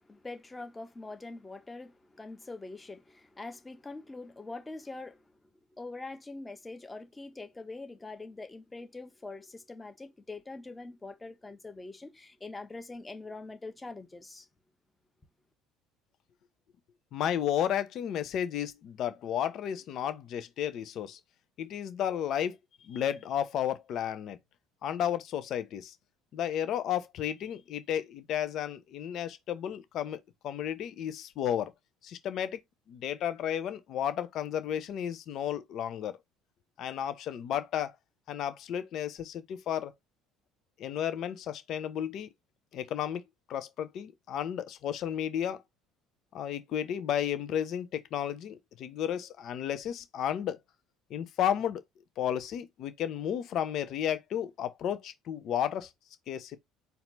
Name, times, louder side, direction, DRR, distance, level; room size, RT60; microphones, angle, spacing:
voice 1, 0.0-5.2 5.8-14.4, left 3 dB, 15° left, 1.4 m, -44 dB
voice 2, 17.1-21.2 21.6-22.6 22.8-24.4 24.8-25.9 26.3-31.7 32.0-32.6 32.9-36.2 36.8-37.9 38.3-39.9 40.8-42.3 42.7-43.2 43.5-45.6 46.3-50.6 51.1-51.8 52.2-55.9 56.3-56.6, left 10 dB, 55° left, 0.8 m, -33 dB
4.3 x 2.7 x 4.0 m
hypercardioid pair, 65°, 0 cm